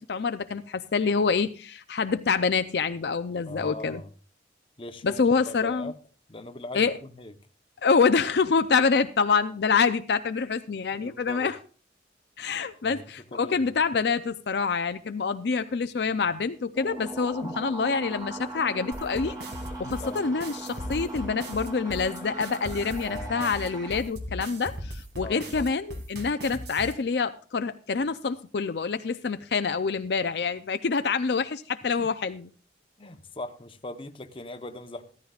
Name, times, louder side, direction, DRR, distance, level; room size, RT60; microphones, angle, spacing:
voice 1, 0.0-4.0 5.0-5.9 6.7-6.9 7.8-11.6 12.4-19.3 19.8-32.5, left 5 dB, 65° left, 0.5 m, -26 dB
voice 2, 3.4-4.1 4.8-5.9 6.3-7.3 10.9-11.5 12.8-13.0 13.3-13.7 17.4-17.6 20.0-20.4 23.0-23.6 25.2-25.6 32.0-32.1 33.0-35.0, left 2 dB, 30° left, 0.9 m, -40 dB
sound 1, 16.7-24.0, right 2 dB, 20° right, 2.3 m, -39 dB
sound 2, 18.9-26.9, equal, 65° right, 2.2 m, -38 dB
15.5 x 13.5 x 2.4 m
head